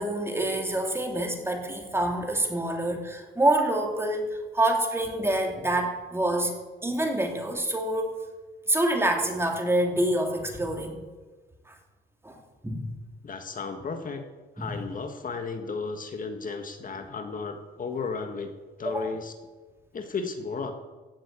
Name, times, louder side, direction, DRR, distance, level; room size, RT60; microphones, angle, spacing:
voice 1, 0.0-6.5 6.8-8.2 8.7-11.0 11.7-11.8 12.2-12.4 12.6-12.9 14.6-14.8 18.8-19.1, right 1 dB, 10° right, 3 dB, 2.9 m, -27 dB
voice 2, 13.2-14.2 14.6-18.5 18.8-19.3 19.9-20.7, left 4 dB, 45° left, 6 dB, 1.7 m, -34 dB
16.0 x 7.7 x 8.4 m, 1.3 s
cardioid pair, 90°, 20 cm